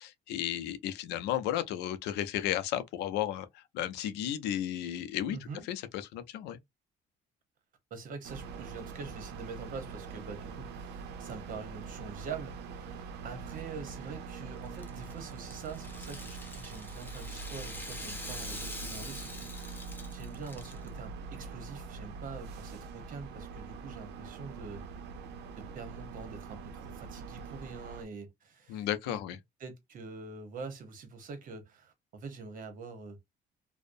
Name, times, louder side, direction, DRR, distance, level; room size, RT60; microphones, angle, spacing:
voice 1, 0.0-6.6 28.7-29.4, left 11 dB, 90° left, 0.4 m, -34 dB
voice 2, 5.3-5.6 7.9-24.8 25.6-29.2 29.6-33.2, right 4 dB, 55° right, 0.9 m, -45 dB
sound 1, 8.2-28.0, right 5 dB, 80° right, 0.5 m, -44 dB
Rattle (instrument), 14.7-20.9, left 2 dB, 10° left, 0.6 m, -45 dB
2.6 x 2.0 x 2.4 m
cardioid pair, 110°, 17 cm